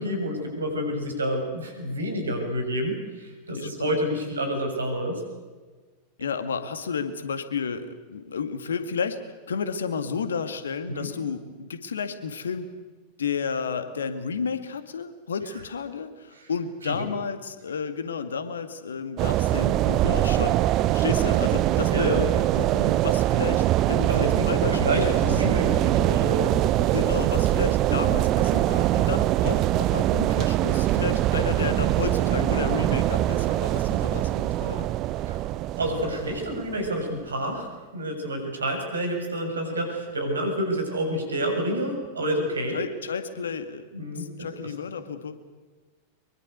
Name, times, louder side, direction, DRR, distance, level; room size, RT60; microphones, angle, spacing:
voice 1, 0.0-5.2 10.9-11.1 16.3-16.5 16.8-17.1 21.9-22.2 24.1-26.9 35.2-35.4 35.8-37.7 37.9-42.8 43.9-44.7, equal, 70° right, 4 dB, 6.8 m, -29 dB
voice 2, 3.5-4.0 6.2-9.2 9.5-12.7 13.2-20.6 20.9-25.3 26.8-34.9 42.7-43.8 44.2-45.3, left 6 dB, 70° left, 10 dB, 2.1 m, -32 dB
sound 1, 19.2-37.1, right 14 dB, 35° right, 0.7 m, -23 dB
24.0 x 23.0 x 8.2 m, 1.4 s
figure-of-eight pair, 90°, 0 cm